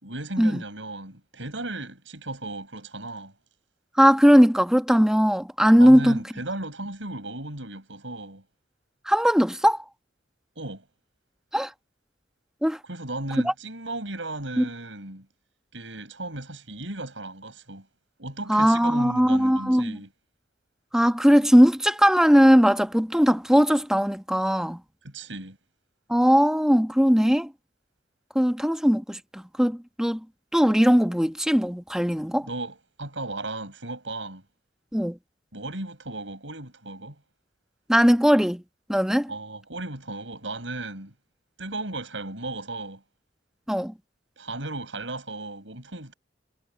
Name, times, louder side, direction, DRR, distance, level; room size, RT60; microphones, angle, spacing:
voice 1, 0.0-3.3 5.8-8.4 10.5-10.8 12.8-15.3 15.7-17.9 18.2-20.1 25.0-25.6 32.4-34.4 35.5-37.2 39.3-41.1 41.6-43.0 44.4-46.1, right 2 dB, 90° right, 6.5 m, -35 dB
voice 2, 4.0-6.2 9.1-9.8 11.5-11.7 12.6-12.8 14.6-14.7 18.5-20.0 20.9-24.8 26.1-27.5 28.3-30.2 30.5-32.5 34.9-35.2 37.9-38.6 38.9-39.3 43.7-43.9, equal, 5° right, 1.3 m, -19 dB
head